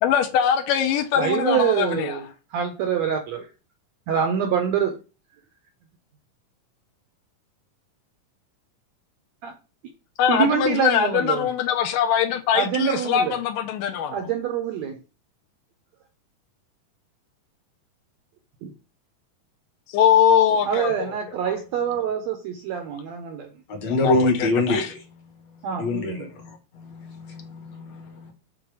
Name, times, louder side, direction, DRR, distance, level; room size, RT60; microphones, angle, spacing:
voice 1, 0.0-2.2 10.2-14.2 19.9-21.1 23.8-24.9, left 9 dB, 80° left, 2.4 m, -22 dB
voice 2, 1.2-2.2 2.5-3.5 4.1-5.0 9.4-9.5 10.3-11.5 12.5-13.4 14.1-15.0 18.6-18.7 20.7-23.5 25.6-26.3, right 8 dB, 75° right, 1.6 m, -25 dB
voice 3, 23.7-25.0 25.8-28.3, left 2 dB, 60° left, 2.3 m, -25 dB
6.5 x 3.9 x 4.7 m
omnidirectional pair, 3.9 m